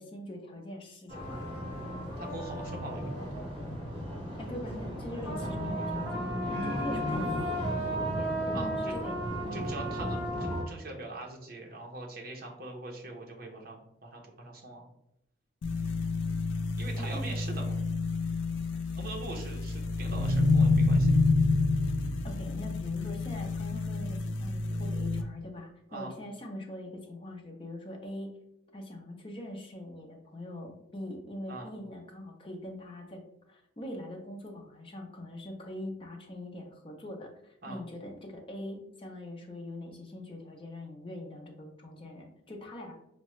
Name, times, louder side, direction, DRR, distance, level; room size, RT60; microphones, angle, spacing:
voice 1, 0.0-1.4 4.4-9.2 17.0-17.4 22.2-28.3 28.7-33.2 33.5-42.9, left 1 dB, 30° left, 1 dB, 0.6 m, -42 dB
sound 1, 1.1-10.6, equal, 25° right, 1.1 m, -34 dB
voice 2, 2.2-3.3 8.5-8.9 9.5-14.8 16.8-17.7 18.9-21.1 25.9-26.1 31.5-31.7 37.6-37.8, right 2 dB, 50° right, 1 dB, 0.7 m, -42 dB
sound 2, 15.6-25.2, left 3 dB, 75° left, 0.4 m, -28 dB
4.5 x 2.1 x 3.0 m, 0.80 s
head